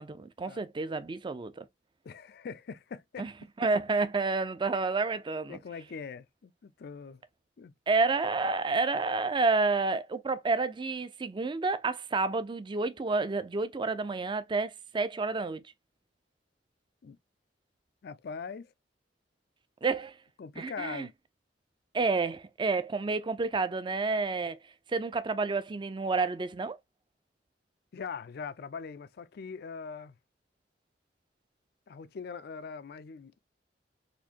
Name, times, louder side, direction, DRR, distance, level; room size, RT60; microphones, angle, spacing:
voice 1, 0.0-1.7 3.2-3.3 3.6-5.6 7.9-15.6 19.8-20.2 20.6-21.1 21.9-24.6 24.9-26.8, right 3 dB, 25° right, 0.4 m, -29 dB
voice 2, 2.0-3.3 5.5-7.2 7.6-7.7 17.0-17.2 18.0-18.7 20.4-21.1 27.9-30.1 31.9-33.4, left 5 dB, 60° left, 0.4 m, -42 dB
4.3 x 2.6 x 2.7 m
head